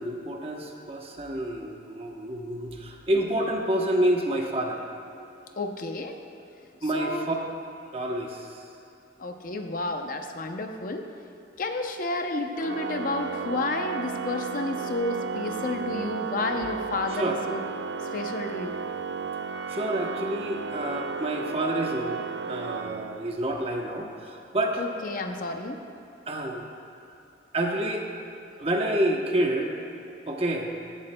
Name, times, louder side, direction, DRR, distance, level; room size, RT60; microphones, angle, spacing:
voice 1, 0.0-4.8 6.8-7.3 7.9-8.7 16.6-16.7 17.1-17.4 19.7-22.2 22.5-24.8 26.3-26.7 27.5-28.1 28.6-29.7 30.3-30.7, right 1 dB, 30° right, 1 dB, 0.9 m, -28 dB
voice 2, 5.6-6.2 6.9-7.3 9.2-11.1 11.6-17.6 18.0-18.8 24.8-25.8, left 2 dB, 45° left, 5 dB, 0.6 m, -31 dB
Organ, 12.6-23.5, right 5 dB, 70° right, 0.4 m, -34 dB
15.5 x 11.5 x 2.2 m, 2.8 s
head